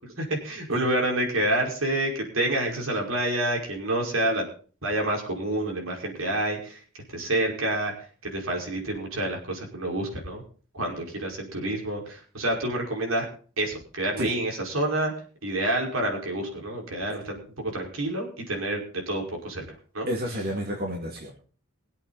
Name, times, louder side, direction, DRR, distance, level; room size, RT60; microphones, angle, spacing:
voice 1, 0.2-4.4 4.8-6.8 7.1-7.9 8.2-10.4 10.7-13.3 13.6-15.1 15.4-18.8 19.1-19.6 19.9-20.1, right 1 dB, 75° right, 1 dB, 5.2 m, -28 dB
voice 2, 20.1-21.4, equal, 50° right, 0 dB, 2.5 m, -30 dB
22.5 x 8.4 x 4.2 m, 0.41 s
head